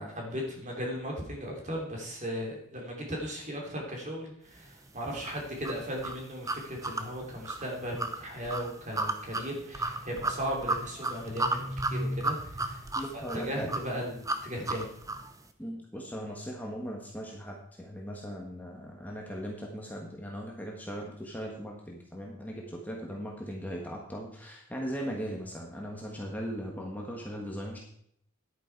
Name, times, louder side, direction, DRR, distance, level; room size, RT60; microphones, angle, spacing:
voice 1, 0.0-14.9, equal, 35° right, 0 dB, 2.9 m, -37 dB
sound 1, 5.2-15.3, right 2 dB, 15° right, 0.7 m, -34 dB
voice 2, 12.9-13.7 15.6-27.8, equal, 10° left, -1 dB, 1.4 m, -38 dB
10.5 x 9.1 x 4.7 m, 0.68 s
head